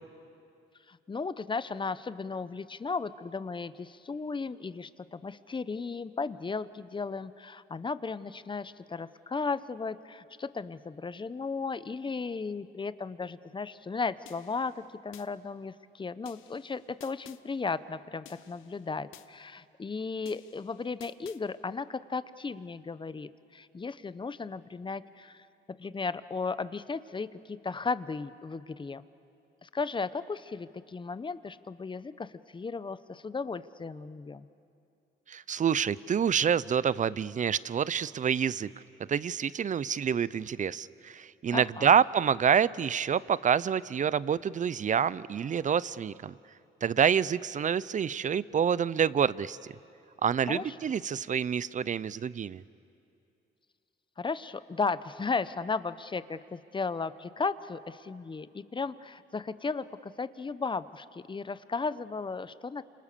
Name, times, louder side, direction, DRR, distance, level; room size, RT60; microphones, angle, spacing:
voice 1, 0.9-25.5 25.8-29.1 29.6-34.5 41.5-41.9 50.5-50.7 54.2-62.8, left 4 dB, 25° left, 15 dB, 0.8 m, -35 dB
sound 1, 14.3-15.3 16.2-17.4 18.2-19.3 20.2-21.4, left 12 dB, 90° left, 1.0 m, -54 dB
voice 2, 35.3-38.7 39.0-46.4 46.8-49.6 50.2-52.6, right 7 dB, 40° right, 19 dB, 0.6 m, -27 dB
29.0 x 27.0 x 6.9 m, 2.5 s
cardioid pair, 90°, 20 cm